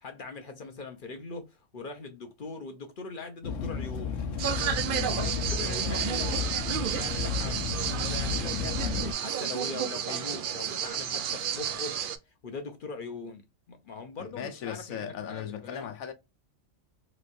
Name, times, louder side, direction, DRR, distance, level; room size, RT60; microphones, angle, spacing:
voice 1, 0.0-4.3 5.1-6.5 6.8-7.6 8.0-12.0 12.4-15.9, left 3 dB, 50° left, 0.7 m, -41 dB
sound 1, 3.4-9.1, left 6 dB, 70° left, 1.0 m, -32 dB
sound 2, 4.4-12.2, right 9 dB, 75° right, 0.4 m, -31 dB
voice 2, 4.8-5.4 14.2-16.1, left 9 dB, 85° left, 1.2 m, -38 dB
3.1 x 3.1 x 2.5 m
omnidirectional pair, 1.4 m